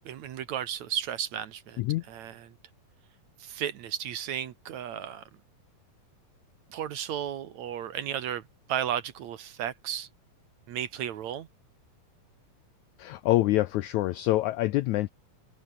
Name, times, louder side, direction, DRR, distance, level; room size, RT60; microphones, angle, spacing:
voice 1, 0.1-1.8 2.1-2.5 3.4-5.2 6.7-10.1 10.7-11.5, right 10 dB, 60° right, 2.2 m, -34 dB
voice 2, 13.0-15.1, left 17 dB, 85° left, 1.7 m, -26 dB
open air
omnidirectional pair, 4.1 m